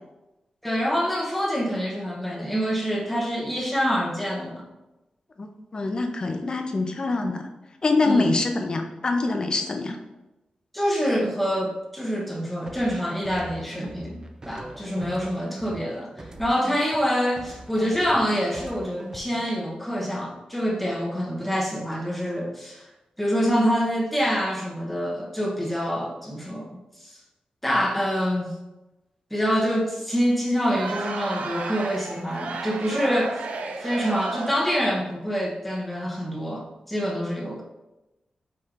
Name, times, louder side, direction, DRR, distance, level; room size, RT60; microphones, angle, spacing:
voice 1, 0.6-4.6 8.1-8.3 10.7-14.2 14.5-22.8 23.2-26.7 27.0-27.2 27.6-28.5 29.3-33.4 33.8-37.6, equal, 5° left, -2 dB, 0.8 m, -26 dB
voice 2, 5.4-7.5 7.8-10.0, left 3 dB, 35° left, 5 dB, 0.5 m, -25 dB
sound 1, 12.7-17.1 17.4-19.7, right 1 dB, 25° right, 0.4 m, -41 dB
Crowd, 30.6-34.7, right 3 dB, 90° right, 0.4 m, -33 dB
4.8 x 4.3 x 2.4 m, 0.99 s
wide cardioid pair, 155°, 2 cm